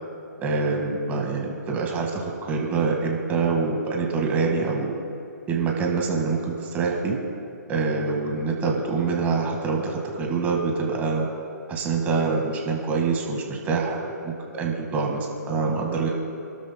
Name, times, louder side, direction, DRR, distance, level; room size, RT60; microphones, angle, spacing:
voice 1, 0.4-5.0 5.5-7.2 7.7-11.3 11.7-16.1, right 4 dB, 15° right, 0 dB, 1.7 m, -25 dB
29.5 x 12.5 x 2.2 m, 2.5 s
hypercardioid pair, 145°, 10 cm